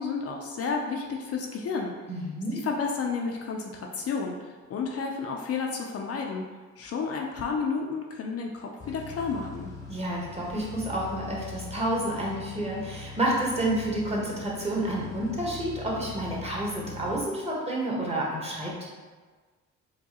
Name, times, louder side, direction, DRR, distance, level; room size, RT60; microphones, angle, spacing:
voice 1, 0.0-1.9 2.5-6.4 6.8-9.7, left 5 dB, 50° left, 1 dB, 0.5 m, -31 dB
voice 2, 2.1-2.6 9.9-18.9, right 1 dB, 20° right, -4 dB, 1.1 m, -29 dB
sound 1, 8.8-17.2, left 4 dB, 10° left, 0.8 m, -42 dB
4.6 x 2.3 x 2.9 m, 1.4 s
cardioid pair, 90°, 30 cm